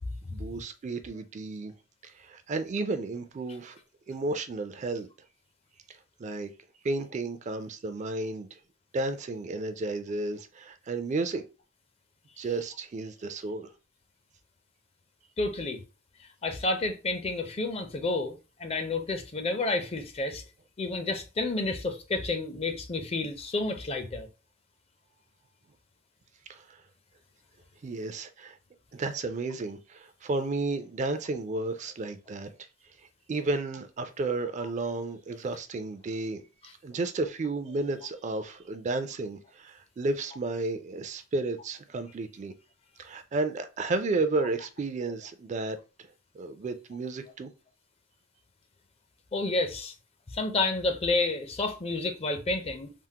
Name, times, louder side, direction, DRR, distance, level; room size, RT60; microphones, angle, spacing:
voice 1, 0.3-1.7 2.0-3.8 4.1-5.1 6.2-6.5 6.8-8.6 8.9-11.4 12.4-13.7 26.5-26.6 27.8-28.6 28.9-32.5 33.3-36.4 36.8-42.5 43.0-45.8 46.4-47.5, right 3 dB, 40° right, 0.4 m, -32 dB
voice 2, 15.4-15.8 16.4-20.4 20.8-24.3 36.6-36.7 49.3-49.9 50.3-52.9, left 2 dB, 30° left, 0.5 m, -30 dB
3.5 x 2.0 x 2.7 m
head